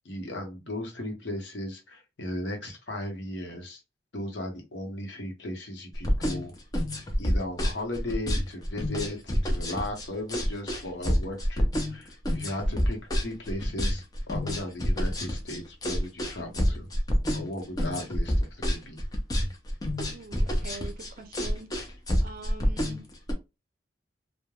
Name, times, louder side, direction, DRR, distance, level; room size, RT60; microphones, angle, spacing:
voice 1, 0.0-3.8 4.1-6.5 7.2-16.9 17.3-19.0, left 1 dB, 70° left, 0.9 m, -36 dB
sound 1, 5.9-23.3, equal, 20° left, 0.5 m, -27 dB
voice 2, 20.0-21.7 22.2-23.0, right 3 dB, 50° right, 0.5 m, -44 dB
3.1 x 2.1 x 2.2 m
head